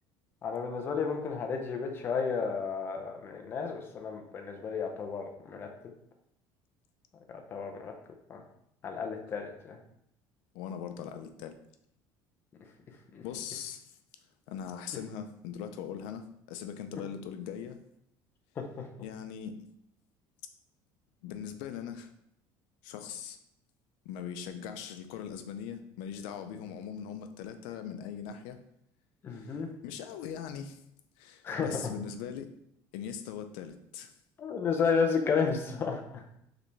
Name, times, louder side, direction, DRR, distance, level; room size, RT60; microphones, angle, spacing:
voice 1, 0.4-5.7 7.3-7.9 8.3-8.4 8.8-9.8 13.1-13.2 18.6-18.9 29.2-29.7 31.4-31.9 34.4-36.2, left 5 dB, 25° left, 4 dB, 0.6 m, -32 dB
voice 2, 10.5-11.6 13.2-13.9 14.5-17.8 19.0-19.6 21.2-22.1 22.8-23.4 24.0-28.6 29.3-29.6 29.8-30.8 31.2-32.5 32.9-34.1, left 8 dB, 90° left, 8 dB, 0.5 m, -40 dB
4.9 x 3.4 x 3.2 m, 0.74 s
cardioid pair, 175°, 9 cm